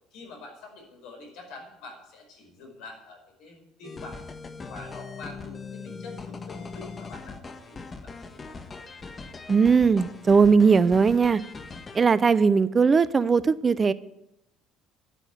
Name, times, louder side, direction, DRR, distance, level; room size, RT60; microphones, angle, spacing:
voice 1, 0.1-4.2 4.7-8.6, left 3 dB, 65° left, 3 dB, 5.1 m, -46 dB
sound 1, 3.8-12.1, left 4 dB, 30° left, 1.5 m, -41 dB
voice 2, 9.5-11.4 11.9-13.9, right 5 dB, 30° right, 17 dB, 0.6 m, -19 dB
12.0 x 10.0 x 7.6 m, 0.84 s
hypercardioid pair, 60°, 0 cm